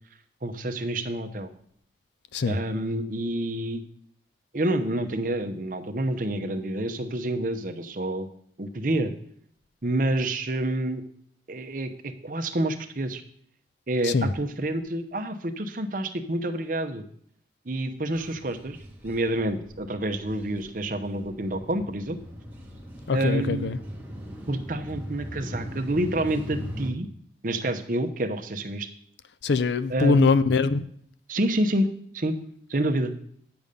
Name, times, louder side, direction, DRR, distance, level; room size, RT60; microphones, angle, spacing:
voice 1, 0.4-1.5 2.5-3.8 4.5-8.3 8.6-9.1 9.8-11.0 11.5-13.2 13.9-17.0 17.7-18.8 19.0-22.2 23.1-23.8 24.5-27.1 27.4-28.9 29.9-30.3 31.3-32.3 32.7-33.1, right 1 dB, 45° right, 0.8 m, -28 dB
sound 1, 18.1-26.9, equal, 10° right, 1.2 m, -40 dB
voice 2, 23.1-23.8 29.4-30.8, left 4 dB, 75° left, 0.5 m, -23 dB
9.6 x 7.0 x 5.2 m
head